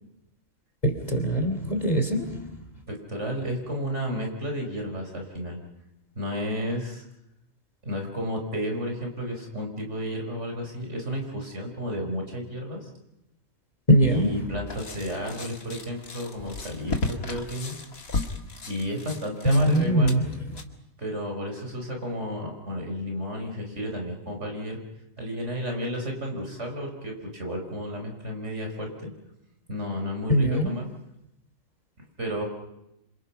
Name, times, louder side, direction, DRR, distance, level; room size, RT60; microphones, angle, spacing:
voice 1, 0.8-2.4 13.9-14.4 19.4-20.3 30.3-30.8, equal, 30° left, 5 dB, 3.2 m, -22 dB
voice 2, 2.9-5.6 6.2-7.0 7.8-12.9 14.0-17.7 18.6-20.2 21.0-24.8 25.2-29.1 29.7-30.9 32.2-32.4, equal, 55° right, 2 dB, 5.3 m, -32 dB
sound 1, 14.7-20.6, left 3 dB, 80° left, 2.4 m, -35 dB
28.0 x 26.5 x 5.8 m, 0.85 s
omnidirectional pair, 1.4 m